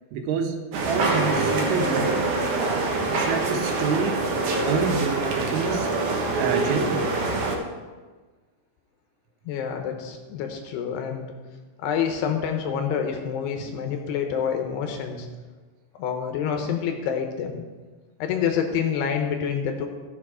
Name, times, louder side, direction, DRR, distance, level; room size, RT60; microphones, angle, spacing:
voice 1, 0.1-0.6 0.9-2.2 3.2-4.2 4.7-5.9 6.3-7.1 13.6-13.7, right 5 dB, 85° right, 4 dB, 3.5 m, -27 dB
sound 1, 0.7-7.6, right 3 dB, 65° right, 1.9 m, -25 dB
voice 2, 9.5-11.3 11.8-15.3 16.0-17.7 18.2-19.9, left 7 dB, 75° left, 4 dB, 2.7 m, -27 dB
14.0 x 7.2 x 4.9 m, 1.4 s
omnidirectional pair, 5.3 m